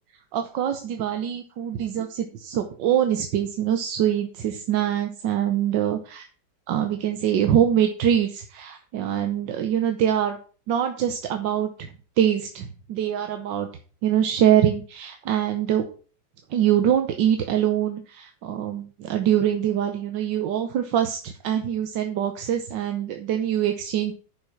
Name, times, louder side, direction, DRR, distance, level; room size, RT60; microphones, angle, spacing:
voice 1, 0.3-6.3 6.7-10.4 10.7-11.9 12.2-13.7 14.0-15.8 16.5-24.1, right 10 dB, 85° right, 6 dB, 1.6 m, -24 dB
10.5 x 5.7 x 5.8 m, 0.39 s
omnidirectional pair, 1.9 m